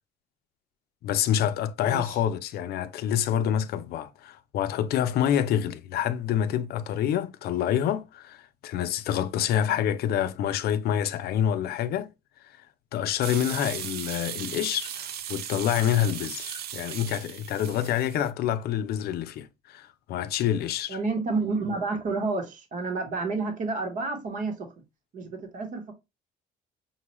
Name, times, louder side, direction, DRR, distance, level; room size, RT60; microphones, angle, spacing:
voice 1, 1.0-12.1 12.9-21.0, left 10 dB, 70° left, 0.5 m, -27 dB
voice 2, 1.8-2.2 20.9-24.8 25.1-25.9, right 3 dB, 50° right, 1.1 m, -30 dB
sound 1, 13.2-18.3, right 10 dB, 70° right, 0.5 m, -37 dB
5.6 x 2.3 x 3.0 m
cardioid pair, 110°, 17 cm